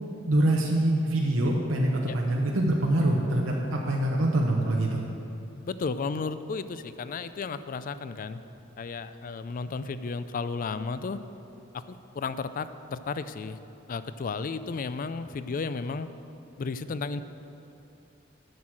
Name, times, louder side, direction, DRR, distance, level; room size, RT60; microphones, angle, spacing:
voice 1, 0.3-5.0, right 1 dB, 85° right, -1 dB, 0.9 m, -25 dB
voice 2, 5.7-8.4 8.8-11.2 11.7-13.6 13.9-16.1 16.6-17.2, left 4 dB, 45° left, 12 dB, 0.4 m, -33 dB
9.4 x 6.3 x 7.6 m, 3.0 s
head